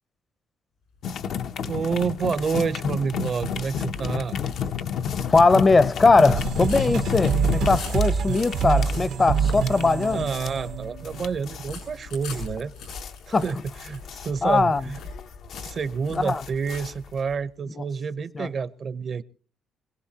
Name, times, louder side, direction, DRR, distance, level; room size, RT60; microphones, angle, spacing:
sound 1, 0.9-17.4, left 4 dB, 90° left, 7.4 m, -42 dB
sound 2, 1.0-17.3, left 8 dB, 75° left, 0.7 m, -31 dB
voice 1, 1.6-4.4 8.8-8.9 10.1-12.7 13.3-13.6 13.8-15.0 15.6-19.2, right 5 dB, 50° right, 0.7 m, -28 dB
voice 2, 5.3-10.3 13.3-13.4 14.4-14.8 16.1-16.4 17.7-17.8 18.3-18.5, left 3 dB, 30° left, 0.6 m, -20 dB
sound 3, 6.3-11.6, right 7 dB, 85° right, 1.0 m, -26 dB
24.5 x 17.0 x 2.8 m
cardioid pair, 90°, 0 cm